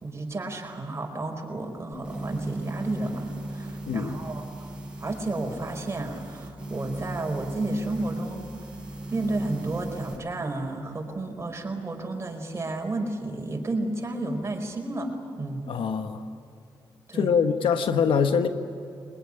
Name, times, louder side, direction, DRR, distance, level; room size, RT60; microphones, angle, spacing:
voice 1, 0.0-4.4 5.0-8.4 9.1-15.1 15.4-15.6 17.1-17.3, right 2 dB, 30° right, 2 dB, 4.8 m, -32 dB
sound 1, 1.9-10.2, right 2 dB, 10° right, 7.0 m, -37 dB
voice 2, 3.9-4.2 15.7-16.3 17.1-18.5, left 6 dB, 80° left, 8 dB, 1.3 m, -24 dB
22.5 x 20.5 x 9.9 m, 2.5 s
cardioid pair, 65°, 9 cm